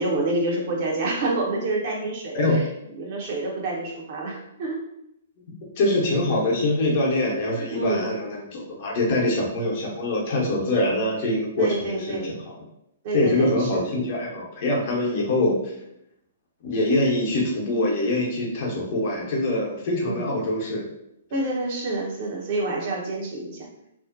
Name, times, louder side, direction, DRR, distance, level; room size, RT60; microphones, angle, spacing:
voice 1, 0.0-2.7 3.0-4.8 7.6-8.1 11.6-12.3 13.0-13.9 20.0-20.3 21.3-23.7, right 2 dB, 45° right, -2 dB, 0.7 m, -28 dB
voice 2, 5.8-12.4 13.1-15.6 16.6-20.9, left 1 dB, 45° left, -3 dB, 0.8 m, -24 dB
2.6 x 2.1 x 2.4 m, 0.80 s
figure-of-eight pair, 120°, 0 cm